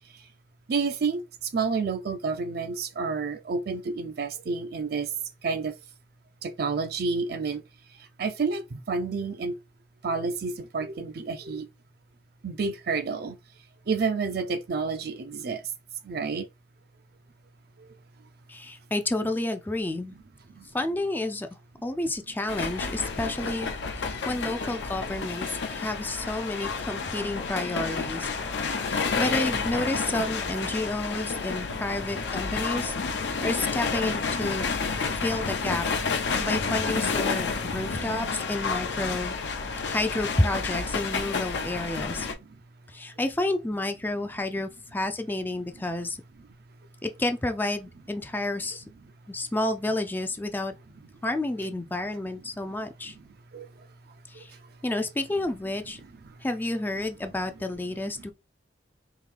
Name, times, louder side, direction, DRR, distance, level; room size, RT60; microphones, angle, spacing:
voice 1, 0.7-5.1 5.4-5.7 6.4-7.6 7.9-9.6 10.0-11.7 12.4-13.4 13.9-15.6 16.0-16.5 17.8-17.9 20.5-20.7 24.1-24.3 25.7-25.8 28.6-29.0 33.3-33.4 36.3-36.4 42.5-42.6 44.5-44.6 53.1-53.2 53.5-53.9 54.3-54.7 56.0-56.1 56.4-56.5, right 4 dB, 60° right, 0.5 m, -30 dB
voice 2, 18.5-20.2 20.7-21.5 21.8-23.7 24.0-28.3 28.9-32.9 33.4-34.6 35.2-35.9 36.4-39.3 39.9-42.3 42.9-46.2 47.0-48.8 49.3-50.7 51.2-53.1 54.3-54.5 54.8-56.0 56.4-58.3, left 2 dB, 10° left, 0.3 m, -30 dB
sound 1, 22.5-42.3, left 4 dB, 80° left, 0.6 m, -30 dB
3.6 x 2.7 x 3.2 m
head